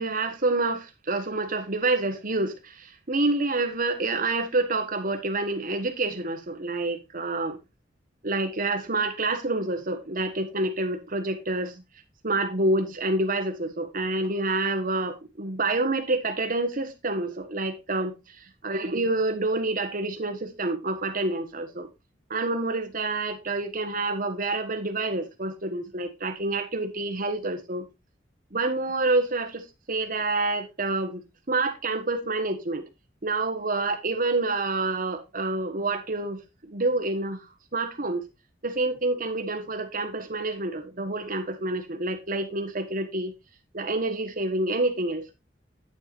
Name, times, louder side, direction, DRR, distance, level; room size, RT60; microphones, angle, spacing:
voice 1, 0.0-7.6 8.2-11.7 12.2-21.9 22.3-27.8 28.5-31.2 31.5-32.8 33.2-37.4 37.7-38.3 38.6-43.3 43.7-45.3, right 2 dB, 50° right, 1.4 m, -28 dB
9.2 x 8.9 x 2.6 m
head